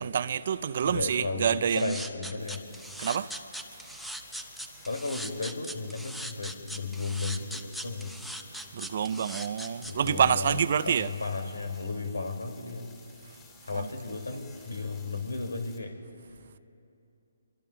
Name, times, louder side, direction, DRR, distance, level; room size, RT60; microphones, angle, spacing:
voice 1, 0.0-2.0 3.0-3.3 8.7-11.1 13.7-13.9, right 8 dB, 50° right, 0.5 m, -27 dB
voice 2, 0.8-2.6 4.8-8.1 9.8-12.9 13.6-16.0, left 3 dB, 90° left, 2.3 m, -34 dB
sound 1, 1.7-10.1, equal, ahead, 0.7 m, -40 dB
sound 2, 2.4-15.8, left 5 dB, 20° left, 2.7 m, -56 dB
26.0 x 23.5 x 2.3 m
hypercardioid pair, 150°, 0 cm